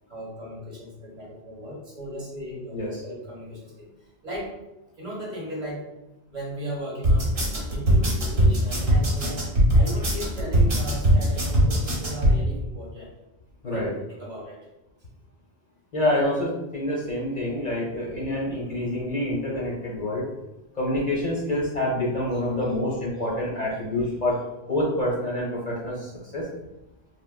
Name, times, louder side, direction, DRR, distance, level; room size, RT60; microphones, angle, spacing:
voice 1, 0.1-3.9 4.2-4.5 5.0-5.8 6.3-7.3 7.7-9.4 9.7-13.1 13.7-14.6 22.3-22.4 24.0-24.1, equal, 45° right, -4 dB, 0.7 m, -36 dB
sound 1, 7.0-12.4, right 1 dB, 70° right, 1.1 m, -20 dB
voice 2, 15.9-20.2 20.8-24.4 24.7-26.5, left 1 dB, 45° left, -4 dB, 0.7 m, -27 dB
3.4 x 2.2 x 2.2 m, 0.95 s
omnidirectional pair, 1.1 m